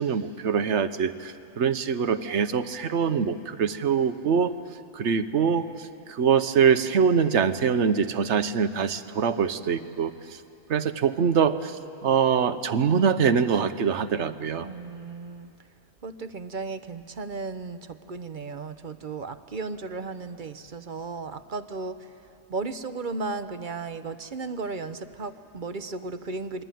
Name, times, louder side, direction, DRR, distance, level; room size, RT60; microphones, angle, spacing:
voice 1, 0.0-4.5 4.9-10.4 10.7-14.7, right 6 dB, 75° right, 11 dB, 1.2 m, -24 dB
voice 2, 14.6-15.5 16.0-22.1 22.5-26.6, right 3 dB, 45° right, 11 dB, 0.9 m, -35 dB
28.0 x 22.5 x 9.2 m, 2.6 s
omnidirectional pair, 1.2 m